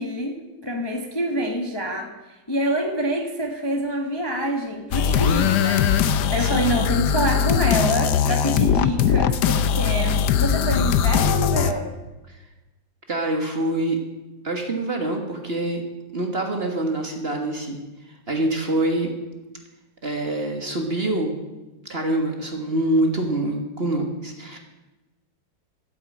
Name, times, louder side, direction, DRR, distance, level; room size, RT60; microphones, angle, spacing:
voice 1, 0.0-11.9, equal, 15° left, 3 dB, 0.9 m, -26 dB
sound 1, 4.9-11.7, left 8 dB, 65° left, 1.1 m, -20 dB
voice 2, 13.1-14.0 14.4-15.8 16.1-17.8 18.3-19.1 20.0-21.4 21.9-24.6, right 1 dB, 30° right, 3 dB, 1.6 m, -25 dB
12.0 x 9.2 x 8.6 m, 1.1 s
omnidirectional pair, 2.2 m